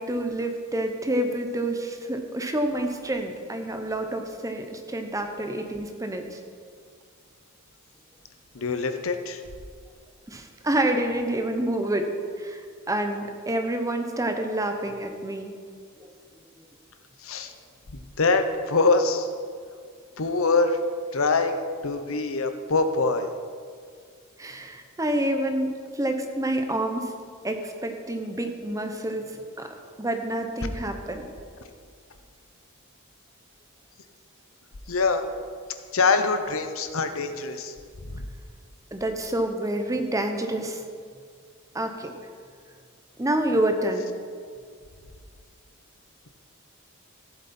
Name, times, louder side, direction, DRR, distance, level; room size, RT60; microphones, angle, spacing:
voice 1, 0.0-6.4 10.3-12.1 12.4-12.6 12.9-15.5 24.4-27.1 27.4-29.7 30.0-31.3 38.9-40.8 41.7-42.1 43.2-44.1, right 1 dB, 15° right, 5 dB, 0.9 m, -28 dB
voice 2, 8.5-9.4 17.2-17.5 17.9-19.3 20.2-20.8 21.1-23.3 34.9-35.2 35.9-37.7 38.1-38.2, left 3 dB, 70° left, 8 dB, 0.9 m, -24 dB
14.5 x 7.6 x 4.3 m, 2.1 s
head